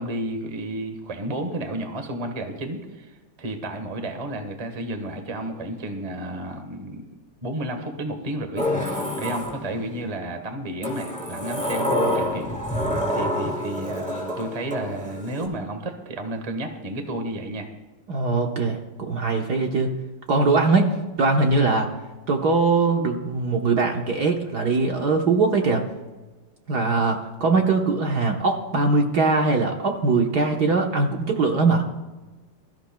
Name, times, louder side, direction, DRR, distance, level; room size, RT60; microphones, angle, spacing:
voice 1, 0.0-7.0 7.4-8.7 8.9-17.7, right 1 dB, 20° right, 5 dB, 1.1 m, -32 dB
Sliding door, 8.6-10.0 10.8-15.5, left 1 dB, 5° left, 3.6 m, -27 dB
voice 2, 18.1-19.9 20.3-20.9 21.2-21.9 22.3-25.9 26.7-31.8, right 3 dB, 55° right, 2 dB, 1.4 m, -21 dB
22.0 x 13.5 x 2.3 m, 1.2 s
omnidirectional pair, 2.4 m